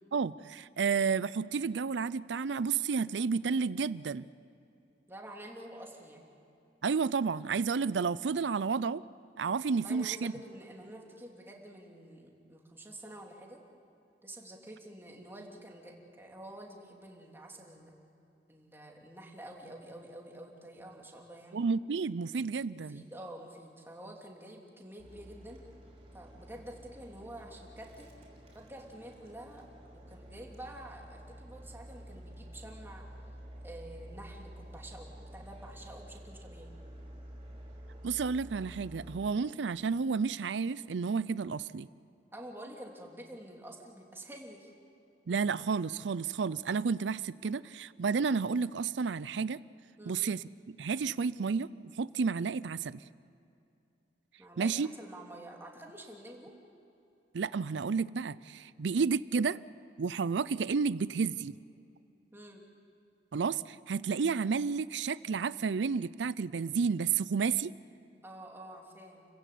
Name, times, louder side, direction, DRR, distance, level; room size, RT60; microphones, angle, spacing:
voice 1, 0.1-4.3 6.8-9.0 9.4-10.3 21.5-23.0 38.0-41.9 45.3-49.6 50.1-51.7 52.0-53.0 54.6-54.9 57.3-59.6 60.0-61.6 63.3-67.7, right 5 dB, 70° right, 18 dB, 0.5 m, -31 dB
voice 2, 5.1-6.3 9.7-13.6 14.2-17.9 18.5-21.6 22.7-25.6 26.1-28.1 28.5-29.6 29.9-33.0 33.6-36.7 42.3-44.7 50.0-50.2 54.4-56.5 62.3-62.6 68.2-69.3, right 1 dB, 15° right, 0 dB, 2.9 m, -48 dB
sound 1, 25.0-39.3, equal, 35° right, 5.5 m, -50 dB
30.0 x 15.5 x 8.5 m, 2.7 s
head